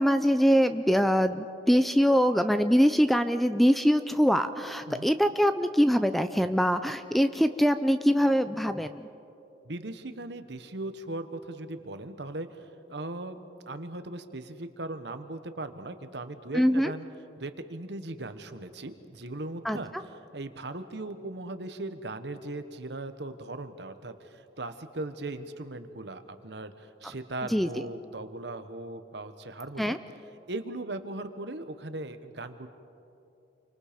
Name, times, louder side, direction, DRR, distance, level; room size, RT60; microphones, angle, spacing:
voice 1, 0.0-9.0 16.5-16.9 19.6-19.8 27.5-27.7 29.8-30.0, equal, ahead, 10 dB, 0.5 m, -23 dB
voice 2, 9.6-13.4 13.7-17.1 17.4-30.0 30.5-32.7, right 2 dB, 65° right, 9 dB, 1.2 m, -38 dB
28.5 x 24.5 x 5.2 m, 2.8 s
head